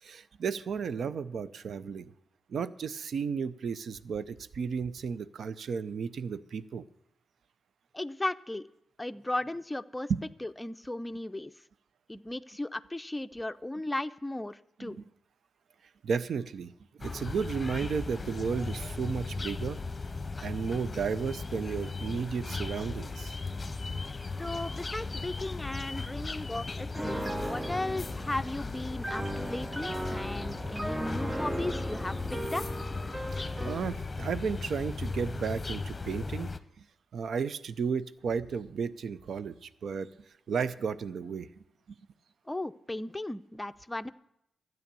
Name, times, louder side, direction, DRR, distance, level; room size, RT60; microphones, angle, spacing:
voice 1, 0.0-2.1 2.5-6.8 10.1-10.2 14.8-15.0 16.0-16.7 17.0-19.8 20.4-23.4 33.3-36.5 36.8-36.9 37.1-40.1 40.5-42.0, right 6 dB, 70° right, 15 dB, 0.6 m, -33 dB
voice 2, 7.9-8.7 9.0-10.1 10.4-11.5 12.1-15.1 24.4-32.6 42.5-44.1, left 1 dB, 15° left, 10 dB, 0.6 m, -36 dB
sound 1, 17.0-36.6, left 3 dB, 35° left, 0.9 m, -37 dB
Piano, 26.9-33.9, right 1 dB, 20° right, 0.8 m, -37 dB
13.0 x 9.4 x 6.9 m, 0.78 s
supercardioid pair, 50°, 0 cm